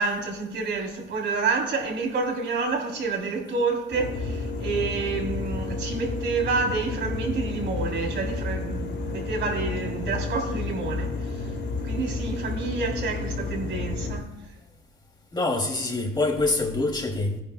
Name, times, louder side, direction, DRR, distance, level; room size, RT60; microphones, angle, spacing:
voice 1, 0.0-11.5 11.8-14.3, right 4 dB, 65° right, 3.3 m, -28 dB
sound 1, 3.9-14.2, left 3 dB, 60° left, 1.6 m, -31 dB
voice 2, 15.3-17.4, left 2 dB, 20° left, 2.5 m, -25 dB
17.0 x 10.0 x 2.2 m
cardioid pair, 90°, 20 cm